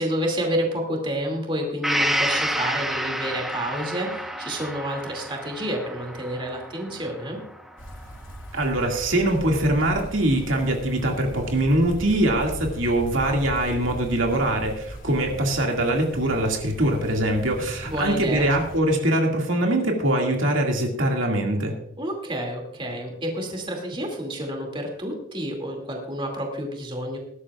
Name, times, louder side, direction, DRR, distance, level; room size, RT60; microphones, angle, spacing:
voice 1, 0.0-7.4 17.9-18.5 22.0-27.2, equal, 25° right, 1 dB, 2.5 m, -29 dB
Gong, 1.8-9.5 9.9-10.0, equal, ahead, 0.8 m, -30 dB
sound 1, 7.8-18.8, equal, 75° left, 2.2 m, -39 dB
voice 2, 8.5-21.7, right 1 dB, 80° right, 1 dB, 2.2 m, -23 dB
20.0 x 11.5 x 2.4 m, 0.75 s
head